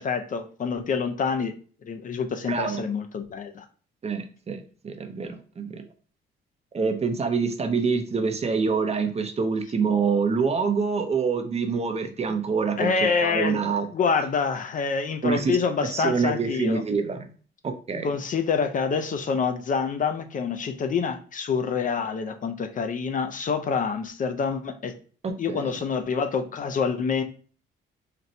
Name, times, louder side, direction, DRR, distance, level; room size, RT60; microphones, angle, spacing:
voice 1, 0.0-1.5 1.8-3.7 12.8-16.8 18.0-24.9 25.4-27.2, left 5 dB, 40° left, 7 dB, 0.4 m, -27 dB
voice 2, 2.5-2.8 4.0-5.8 6.7-12.9 13.2-13.9 15.2-15.6 15.9-17.3 17.6-18.1 25.2-25.7, right 5 dB, 35° right, 7 dB, 0.5 m, -26 dB
4.1 x 2.1 x 2.6 m, 0.41 s
cardioid pair, 90°, 20 cm